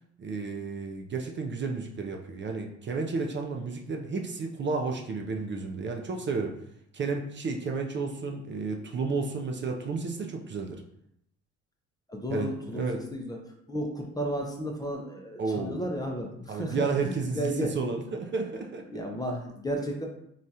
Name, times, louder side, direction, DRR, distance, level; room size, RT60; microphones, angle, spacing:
voice 1, 0.2-6.5 6.9-10.8 12.3-13.0 15.4-15.9 16.5-19.0, right 4 dB, 40° right, 2 dB, 0.5 m, -32 dB
voice 2, 12.1-13.4 13.7-17.7 18.9-20.1, equal, 15° left, 1 dB, 0.5 m, -33 dB
3.3 x 2.4 x 2.7 m, 0.74 s
cardioid pair, 90°, 30 cm